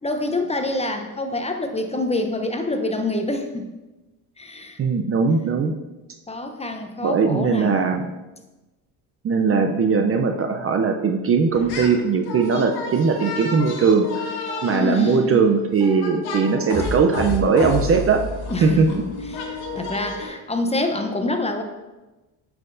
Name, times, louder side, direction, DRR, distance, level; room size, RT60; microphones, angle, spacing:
voice 1, 0.0-3.7 4.4-4.8 6.3-7.9 14.7-15.4 18.5-19.0 19.3-21.6, left 2 dB, 15° left, 5 dB, 0.8 m, -26 dB
voice 2, 4.8-5.7 7.0-8.1 9.2-14.1 14.6-18.2 18.6-18.9, right 5 dB, 30° right, 4 dB, 0.6 m, -19 dB
sound 1, 11.5-12.0 12.2-20.3, left 2 dB, 60° left, 1.7 m, -31 dB
8.8 x 5.8 x 2.6 m, 1.1 s
supercardioid pair, 80°, 43 cm